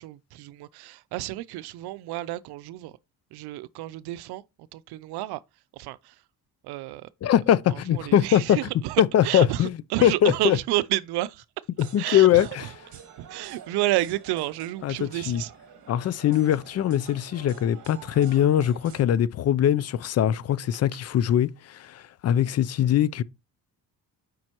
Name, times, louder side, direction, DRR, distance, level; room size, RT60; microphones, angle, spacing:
voice 1, 0.0-3.0 3.3-4.4 4.7-5.4 5.7-6.2 6.6-7.1 7.7-11.4 12.0-12.7 13.2-15.5, right 17 dB, 90° right, 0.5 m, -30 dB
voice 2, 7.2-8.6 9.0-9.7 10.0-10.6 11.8-12.7 14.8-15.4 15.9-23.2, left 11 dB, 40° left, 0.4 m, -22 dB
sound 1, 11.8-19.0, right 7 dB, 50° right, 1.6 m, -48 dB
7.6 x 5.2 x 2.9 m
cardioid pair, 130°, 38 cm